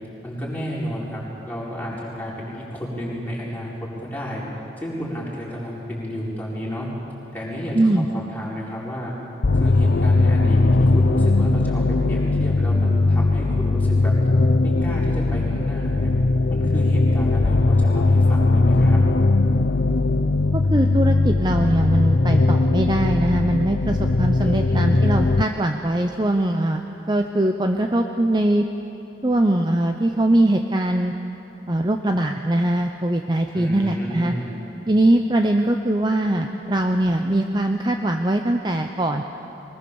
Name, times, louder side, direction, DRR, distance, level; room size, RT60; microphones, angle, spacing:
voice 1, 0.2-3.7 4.0-4.4 4.8-6.9 7.3-9.1 9.5-11.8 12.1-14.1 14.6-16.1 16.5-19.0 24.4-25.0 33.5-34.5, equal, 10° left, -6 dB, 4.7 m, -31 dB
voice 2, 7.7-8.1 20.5-28.6 29.2-31.1 31.7-34.3 34.9-39.2, right 1 dB, 25° right, 4 dB, 0.7 m, -21 dB
sound 1, 9.4-25.4, left 2 dB, 65° left, 0.7 m, -19 dB
22.5 x 20.5 x 7.1 m, 3.0 s
head